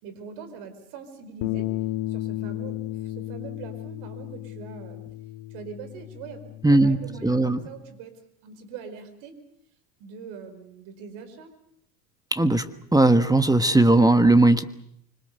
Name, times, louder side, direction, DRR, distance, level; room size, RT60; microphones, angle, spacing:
voice 1, 0.0-1.7 2.1-5.0 5.5-6.4 6.7-9.4 10.0-11.5, right 6 dB, 70° right, 10 dB, 4.8 m, -42 dB
Bass guitar, 1.4-7.7, left 16 dB, 70° left, 1.5 m, -34 dB
voice 2, 6.6-7.0 7.2-7.6 12.3-12.7 12.9-14.6, right 2 dB, 5° right, 10 dB, 1.4 m, -18 dB
25.5 x 25.5 x 6.8 m, 0.70 s
supercardioid pair, 90°, 49 cm